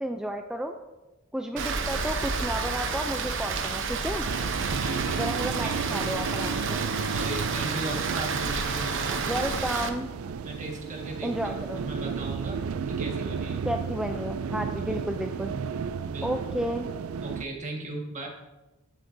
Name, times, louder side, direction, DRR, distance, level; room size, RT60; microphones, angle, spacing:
voice 1, 0.0-0.8 1.3-4.3 5.1-6.8 9.3-10.1 11.2-11.8 13.6-15.5 16.2-16.9, right 1 dB, 5° right, 4 dB, 0.4 m, -32 dB
Rain, 1.6-9.9, right 4 dB, 60° right, 0.8 m, -30 dB
sound 1, 4.2-17.4, right 6 dB, 85° right, 0.4 m, -33 dB
voice 2, 4.7-5.4 5.6-5.8 7.1-9.9 10.4-11.3 11.6-13.6 14.9-15.0 16.0-16.3 17.2-18.3, right 2 dB, 35° right, 0 dB, 1.6 m, -38 dB
12.5 x 8.2 x 2.7 m, 1.1 s
head